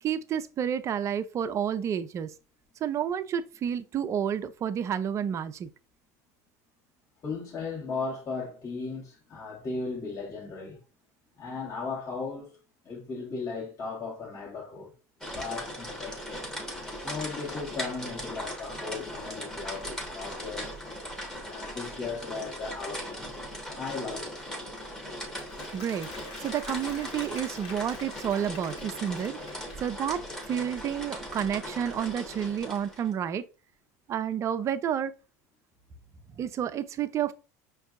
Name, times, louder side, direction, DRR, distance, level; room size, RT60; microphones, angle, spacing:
voice 1, 0.0-2.3 2.8-5.7 25.7-26.1 26.4-29.4 29.8-33.5 34.1-35.1 36.4-37.3, right 9 dB, 35° right, 0.4 m, -30 dB
voice 2, 7.2-10.8 11.4-12.6 12.8-14.9 15.3-16.5 17.0-20.7 21.4-23.3 23.7-24.3, left 4 dB, 35° left, 1.4 m, -36 dB
sound 1, 15.2-33.1, equal, 5° left, 1.1 m, -39 dB
Applause, 25.2-30.2, left 4 dB, 55° left, 1.5 m, -47 dB
5.3 x 2.6 x 2.4 m
hypercardioid pair, 95°, 9 cm